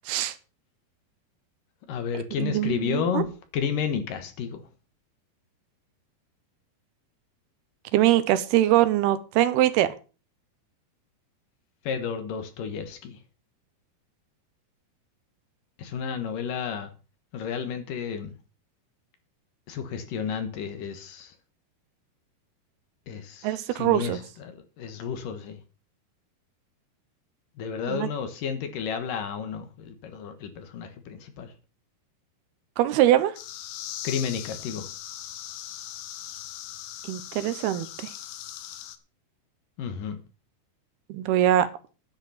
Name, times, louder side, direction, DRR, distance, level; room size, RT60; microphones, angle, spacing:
voice 1, 1.9-3.3 3.5-4.6 11.8-13.2 15.8-16.9 17.3-18.3 19.7-21.3 23.1-25.6 27.6-31.5 34.0-34.9 39.8-40.2, left 7 dB, 65° left, 8 dB, 2.8 m, -32 dB
voice 2, 2.4-3.3 7.9-9.9 23.4-24.2 27.9-28.1 32.8-33.4 37.1-38.1 41.1-41.7, right 13 dB, 85° right, 13 dB, 2.9 m, -23 dB
sound 1, 33.4-39.0, left 12 dB, 90° left, 2.9 m, -39 dB
10.5 x 9.0 x 5.6 m, 0.34 s
omnidirectional pair, 4.4 m